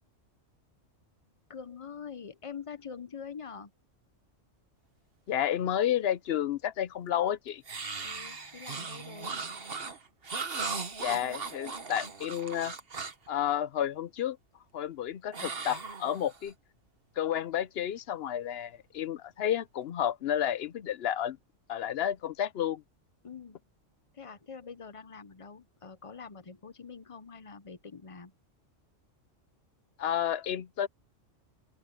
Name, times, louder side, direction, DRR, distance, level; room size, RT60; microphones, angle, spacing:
voice 1, 1.5-3.7 8.0-9.4 9.6-9.7 23.2-23.6 24.1-28.3, left 6 dB, 30° left, 0.7 m, -45 dB
voice 2, 5.3-7.6 11.0-12.7 13.3-14.4 14.7-16.5 17.2-21.4 21.7-22.8 30.0-30.9, left 10 dB, 60° left, 0.8 m, -31 dB
sound 1, 7.6-13.3 15.3-16.5, right 4 dB, 50° right, 1.7 m, -38 dB
open air
omnidirectional pair, 1.3 m